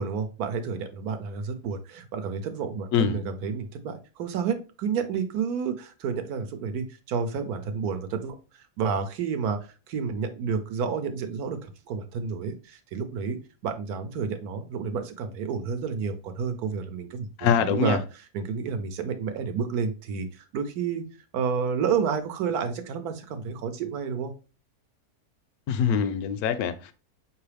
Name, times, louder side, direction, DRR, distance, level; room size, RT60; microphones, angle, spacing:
voice 1, 0.0-8.3 8.8-9.6 9.9-13.4 13.6-18.0 18.3-21.0 21.3-24.3, right 6 dB, 75° right, 1.2 m, -30 dB
voice 2, 2.9-3.2 17.4-18.0 25.7-26.9, left 7 dB, 75° left, 1.0 m, -24 dB
4.7 x 3.0 x 3.2 m
omnidirectional pair, 1.7 m